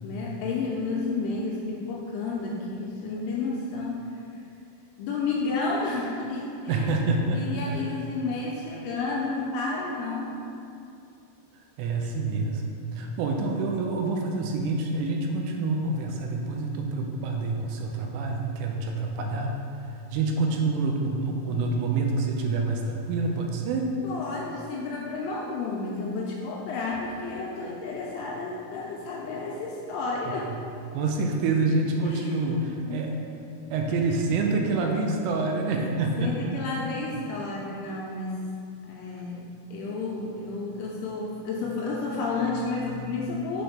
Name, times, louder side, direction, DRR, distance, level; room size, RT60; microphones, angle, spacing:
voice 1, 0.0-4.0 5.0-6.9 7.3-10.4 24.0-30.5 32.0-32.5 32.8-33.0 36.2-38.4 38.9-43.6, left 3 dB, 80° left, -3 dB, 2.8 m, -31 dB
voice 2, 6.7-7.8 11.8-12.6 12.9-19.5 19.8-23.9 30.3-30.6 30.9-33.2 33.7-36.5, right 3 dB, 80° right, 1 dB, 3.1 m, -27 dB
7.8 x 4.5 x 5.1 m, 2.6 s
omnidirectional pair, 5.9 m